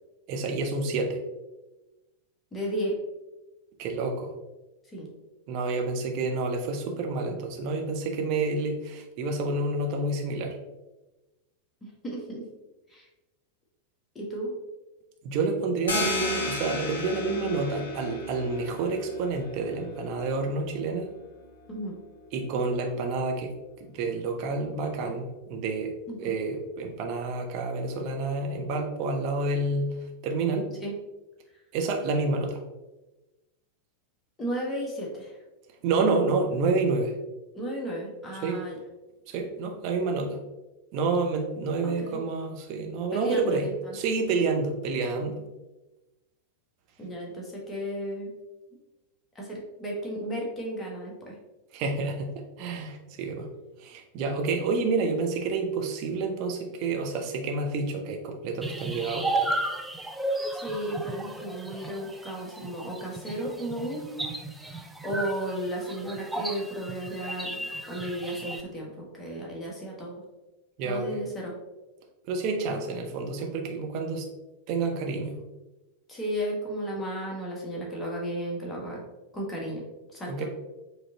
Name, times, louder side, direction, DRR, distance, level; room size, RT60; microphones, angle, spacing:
voice 1, 0.3-1.2 3.8-4.3 5.5-10.6 15.2-21.1 22.3-23.5 23.8-25.9 26.2-30.0 30.2-30.7 31.7-32.6 35.8-37.1 38.4-38.6 39.3-40.4 40.9-45.4 51.7-53.5 53.8-59.6 70.8-71.2 72.3-74.3 74.7-75.4 80.3-80.5, right 3 dB, 45° right, 3 dB, 0.7 m, -29 dB
voice 2, 2.5-3.0 4.9-5.1 12.0-12.5 12.9-13.1 14.1-14.5 21.7-22.0 26.1-26.3 30.8-30.9 34.4-35.4 37.5-38.8 42.0-42.2 43.1-44.0 47.0-48.3 49.3-51.4 60.5-64.3 64.7-70.2 70.8-71.5 76.1-79.0 79.3-79.8 80.1-80.5, right 1 dB, 15° left, -3 dB, 1.2 m, -34 dB
sound 1, 15.9-21.2, left 3 dB, 65° left, 1.0 m, -34 dB
sound 2, 58.6-68.6, right 2 dB, 5° right, 0.4 m, -34 dB
5.0 x 3.0 x 2.7 m, 1.1 s
figure-of-eight pair, 90°, 0 cm